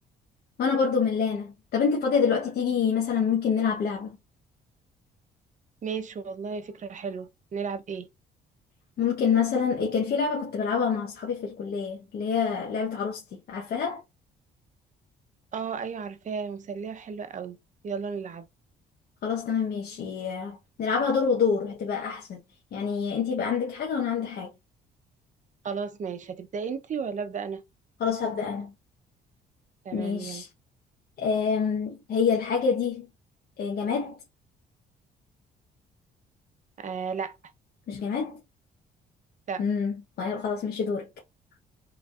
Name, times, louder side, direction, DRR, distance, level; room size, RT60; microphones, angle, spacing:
voice 1, 0.6-4.1 9.0-13.2 13.5-14.0 19.2-22.4 22.7-24.5 28.0-28.7 29.9-30.5 31.2-33.1 33.6-34.2 37.9-38.4 39.6-41.1, left 6 dB, 65° left, 1.1 m, -27 dB
voice 2, 5.8-8.1 15.5-17.6 17.8-18.5 25.6-27.6 29.8-30.4 36.8-37.4 39.5-39.6, right 6 dB, 45° right, 0.8 m, -34 dB
4.7 x 3.3 x 2.5 m
cardioid pair, 95°, 18 cm